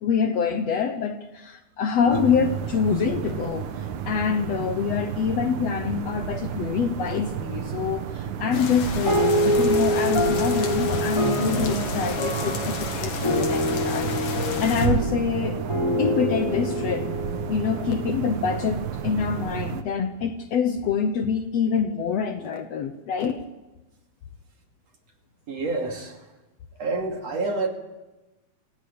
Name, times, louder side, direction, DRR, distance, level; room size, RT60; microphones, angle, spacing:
voice 1, 0.0-14.1 14.6-15.6 16.0-17.1 17.5-23.4, left 6 dB, 80° left, 8 dB, 1.5 m, -26 dB
sound 1, 2.1-19.8, right 8 dB, 65° right, 2.2 m, -32 dB
sound 2, 8.5-14.9, left 4 dB, 55° left, 3.7 m, -32 dB
sound 3, 9.0-18.8, equal, 5° left, 4.8 m, -26 dB
voice 2, 25.5-26.2 26.8-27.7, right 3 dB, 45° right, 3 dB, 3.2 m, -28 dB
26.5 x 16.5 x 8.6 m, 1.1 s
omnidirectional pair, 4.5 m